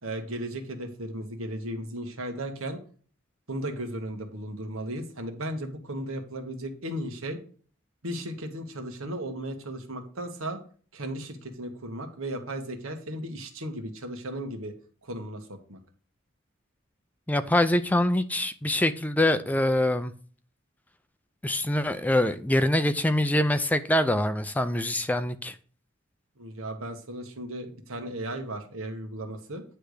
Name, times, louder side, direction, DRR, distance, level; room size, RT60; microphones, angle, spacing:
voice 1, 0.0-2.8 3.5-7.4 8.0-10.6 10.9-14.7 15.0-15.8 26.4-29.6, right 1 dB, 90° right, 1.5 m, -35 dB
voice 2, 17.3-20.1 21.4-25.6, left 1 dB, 10° left, 0.3 m, -24 dB
9.7 x 3.4 x 6.5 m
head